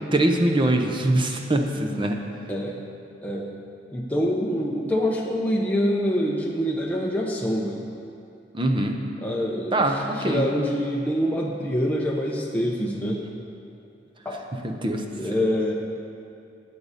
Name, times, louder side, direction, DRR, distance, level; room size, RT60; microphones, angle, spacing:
voice 1, 0.1-2.2 8.5-9.0 9.7-10.5 14.6-15.0, right 1 dB, 25° right, 3 dB, 0.9 m, -23 dB
voice 2, 3.9-7.9 9.2-13.2 14.2-14.4 15.2-15.7, equal, 10° left, -3 dB, 0.8 m, -25 dB
14.0 x 8.7 x 4.1 m, 2.6 s
head